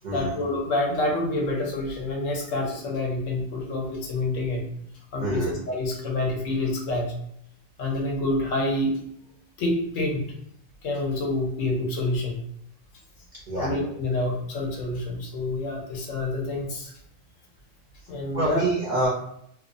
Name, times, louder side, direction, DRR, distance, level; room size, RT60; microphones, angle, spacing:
voice 1, 0.1-4.6 5.1-7.1 7.8-8.9 9.6-10.2 10.8-12.4 13.5-16.9 18.1-18.6, left 2 dB, 70° left, -1 dB, 1.0 m, -27 dB
voice 2, 5.2-5.5 13.5-13.7 18.3-19.1, right 2 dB, 55° right, -6 dB, 0.5 m, -26 dB
2.7 x 2.0 x 2.5 m, 0.71 s
omnidirectional pair, 1.4 m